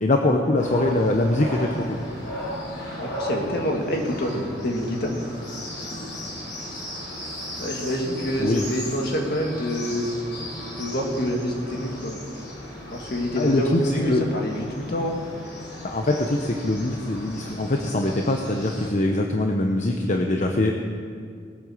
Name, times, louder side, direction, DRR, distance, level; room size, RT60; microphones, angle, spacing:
voice 1, 0.0-2.0 8.4-8.7 13.4-13.8 14.1-14.2 15.8-20.7, left 2 dB, 40° left, 3 dB, 0.8 m, -23 dB
sound 1, 0.6-18.9, equal, 75° left, 4.4 m, -36 dB
voice 2, 3.0-5.1 5.7-6.2 7.6-10.1 10.8-12.2 12.9-15.2, equal, 60° left, 1 dB, 2.1 m, -27 dB
19.5 x 8.9 x 6.4 m, 2.3 s
head